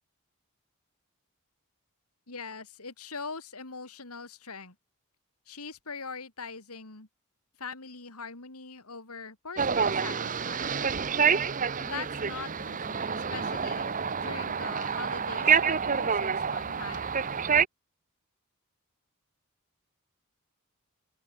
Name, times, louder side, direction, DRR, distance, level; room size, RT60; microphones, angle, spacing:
voice 1, 2.3-4.7 5.5-7.1 7.6-11.0 11.8-17.1, left 4 dB, 80° left, 3.2 m, -42 dB
sound 1, 9.6-17.7, right 6 dB, 35° right, 0.9 m, -28 dB
open air
head